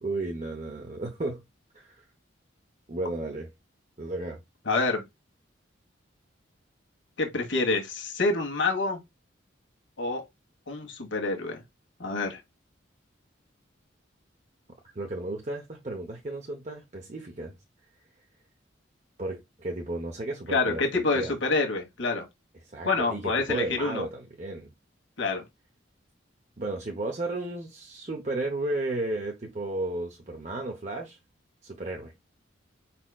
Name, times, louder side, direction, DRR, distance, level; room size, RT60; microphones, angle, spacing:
voice 1, 0.0-1.4 1.7-2.0 2.9-3.5 4.0-4.4 14.9-17.5 19.2-21.3 22.6-24.7 26.6-31.2 31.6-32.1, right 2 dB, 40° right, 0.8 m, -33 dB
voice 2, 4.7-5.0 7.2-9.0 10.0-10.2 10.7-11.6 12.0-12.4 20.5-22.2 22.8-24.0 25.2-25.4, left 3 dB, 75° left, 1.5 m, -27 dB
4.9 x 4.2 x 2.3 m
head